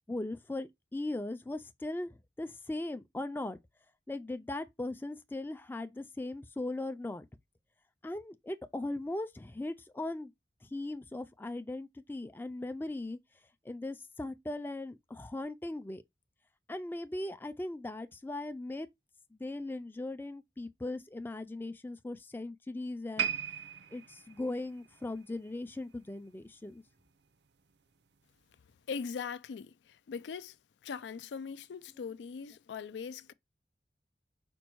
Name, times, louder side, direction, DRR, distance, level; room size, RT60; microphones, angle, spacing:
voice 1, 0.1-3.6 4.1-7.3 8.0-10.3 10.6-13.2 13.6-16.0 16.7-18.9 19.3-23.3 23.9-26.8, left 2 dB, 10° left, 0.4 m, -39 dB
sound 1, 23.2-26.5 26.8-27.0 27.7-27.8, right 9 dB, 75° right, 0.6 m, -39 dB
voice 2, 28.9-29.7 30.1-30.6 30.8-33.3, left 6 dB, 80° left, 0.4 m, -40 dB
5.2 x 2.2 x 4.5 m
head